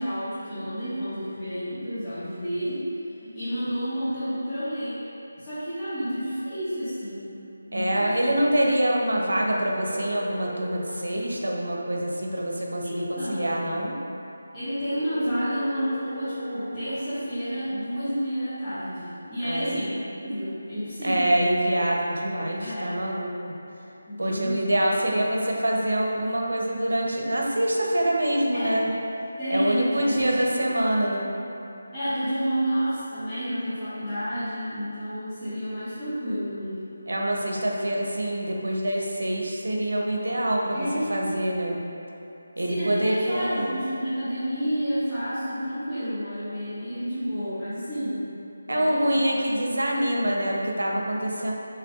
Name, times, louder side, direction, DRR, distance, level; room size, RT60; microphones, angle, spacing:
voice 1, 0.0-5.0 5.4-7.3 7.7-8.4 12.8-13.6 14.5-21.6 22.6-23.0 24.1-24.7 25.1-25.2 25.5-25.6 28.5-28.8 29.4-30.7 31.9-36.8 40.7-41.2 42.7-48.2 48.7-49.2, equal, 15° left, -20 dB, 1.5 m, -30 dB
voice 2, 7.7-13.9 19.4-19.8 21.0-23.3 24.2-28.9 29.5-31.3 37.1-41.8 42.6-43.8 48.7-51.5, right 1 dB, 85° right, -1 dB, 0.7 m, -25 dB
sound 1, 8.9-11.0 14.9-17.0, right 2 dB, 50° right, 1.0 m, -40 dB
5.8 x 3.3 x 2.4 m, 2.9 s
figure-of-eight pair, 165°, 0 cm